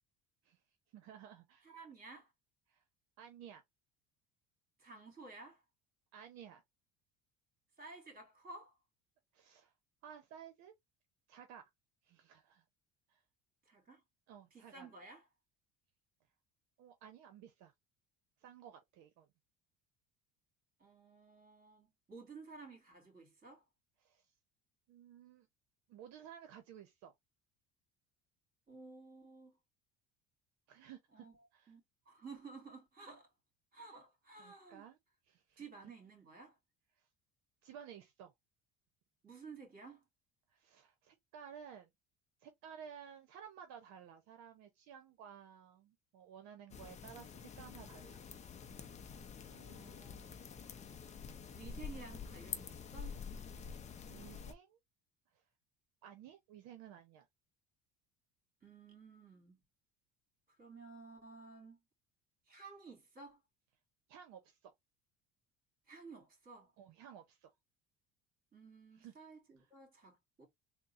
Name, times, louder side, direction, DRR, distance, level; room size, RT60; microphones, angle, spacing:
voice 1, 0.9-1.7 2.7-2.8 3.2-3.6 6.1-6.6 9.3-9.7 10.0-10.7 11.3-11.7 12.0-12.6 13.1-13.2 14.3-14.9 16.8-17.7 18.4-19.3 24.0-24.3 24.9-25.5 25.9-27.1 30.7-31.3 31.5-31.7 34.4-35.0 35.2-35.9 36.9-37.1 37.6-38.3 40.5-41.9 42.4-48.2 54.1-54.8 55.3-55.4 56.0-57.3 64.1-64.7 66.8-67.5 68.9-69.1 69.6-69.7, right 8 dB, 70° right, 0.8 m, -55 dB
voice 2, 1.6-2.3 4.8-5.6 7.8-8.8 13.7-14.0 14.5-15.2 20.8-23.6 28.7-29.5 31.1-31.3 31.7-33.3 33.7-34.8 35.6-36.6 39.2-40.0 49.5-50.4 51.5-53.2 58.6-59.6 60.6-61.8 62.5-63.4 65.9-66.7 68.5-70.5, right 4 dB, 30° right, 2.3 m, -54 dB
sound 1, 46.7-54.5, left 6 dB, 25° left, 0.5 m, -48 dB
3.6 x 2.1 x 4.1 m
cardioid pair, 135°, 29 cm